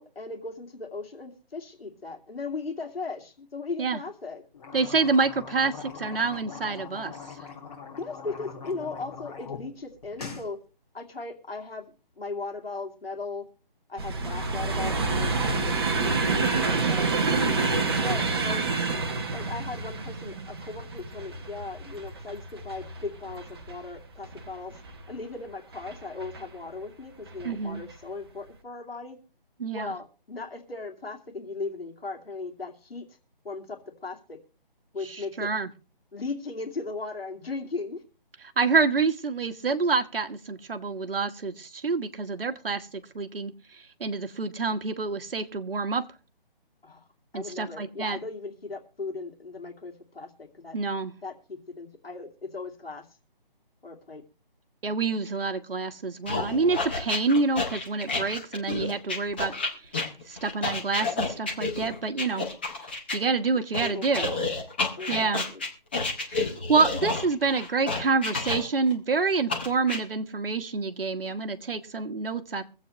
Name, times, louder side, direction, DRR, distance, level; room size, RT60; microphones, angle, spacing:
voice 1, 0.0-4.4 7.9-10.6 10.9-11.9 12.2-13.4 13.9-17.1 17.9-18.6 19.3-29.2 29.7-33.2 33.4-34.4 34.9-35.5 36.1-38.0 46.8-47.0 47.3-50.8 51.2-53.1 53.8-54.2 63.8-64.3 65.0-65.6, left 3 dB, 80° left, 3 dB, 2.4 m, -37 dB
sound 1, 4.5-9.6 9.9-10.5, left 6 dB, 40° left, 3.1 m, -41 dB
voice 2, 4.7-7.1 27.4-27.8 29.6-29.9 35.1-35.7 38.6-46.0 47.3-48.2 50.7-51.1 54.8-59.5 60.3-62.5 63.1-64.3 65.1-65.4 66.3-72.6, right 4 dB, 70° right, 7 dB, 1.4 m, -27 dB
sound 2, 14.0-25.1 25.7-26.4 27.3-27.5 27.8-27.9, right 3 dB, 25° right, 1.0 m, -28 dB
sound 3, 56.3-63.2 63.7-68.9 69.5-70.0, left 3 dB, 10° left, 0.7 m, -30 dB
23.5 x 8.0 x 3.1 m, 0.37 s
hypercardioid pair, 170°, 29 cm